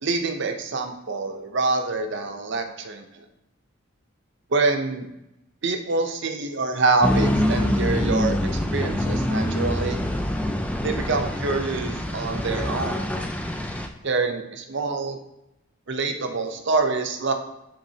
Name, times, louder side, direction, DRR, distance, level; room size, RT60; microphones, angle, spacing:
voice 1, 0.0-3.2 4.5-5.1 5.6-10.0 10.8-13.0 14.0-15.2 15.9-17.3, right 3 dB, 55° right, 6 dB, 0.6 m, -26 dB
sound 1, 7.0-13.9, left 1 dB, 5° left, 0.3 m, -25 dB
10.5 x 3.6 x 2.8 m, 0.90 s
head